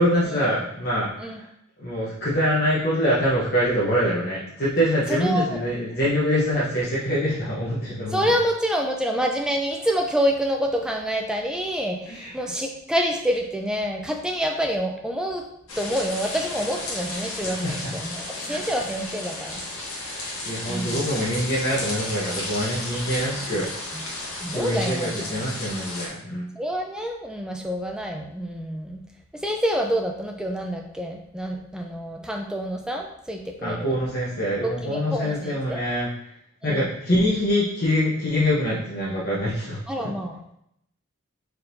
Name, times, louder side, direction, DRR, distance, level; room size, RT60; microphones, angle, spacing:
voice 1, 0.0-1.4 1.8-8.3 12.1-12.4 17.4-17.9 18.5-18.6 20.0-23.7 24.5-26.5 33.6-36.1 36.6-40.1, equal, 45° left, -9 dB, 0.8 m, -25 dB
voice 2, 5.1-5.6 8.1-15.5 15.8-19.6 20.7-21.0 23.9-24.0 24.4-25.4 26.5-29.0 29.3-34.0 34.6-35.8 36.6-36.9 39.9-40.4, equal, 5° right, 2 dB, 0.3 m, -27 dB
sound 1, 15.7-26.1, left 2 dB, 70° left, 1.1 m, -33 dB
4.4 x 3.7 x 2.6 m, 0.77 s
head